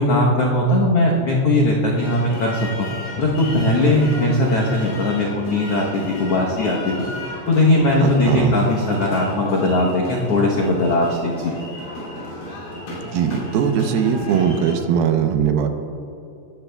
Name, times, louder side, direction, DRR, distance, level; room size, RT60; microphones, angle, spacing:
voice 1, 0.0-2.9 3.2-7.0 7.5-11.5, left 1 dB, 90° left, -3 dB, 1.3 m, -19 dB
sound 1, 2.0-14.8, left 1 dB, 65° left, 4.3 m, -34 dB
voice 2, 8.0-8.6 13.0-15.7, right 7 dB, 85° right, 6 dB, 2.7 m, -20 dB
17.5 x 13.0 x 2.3 m, 2.6 s
omnidirectional pair, 4.3 m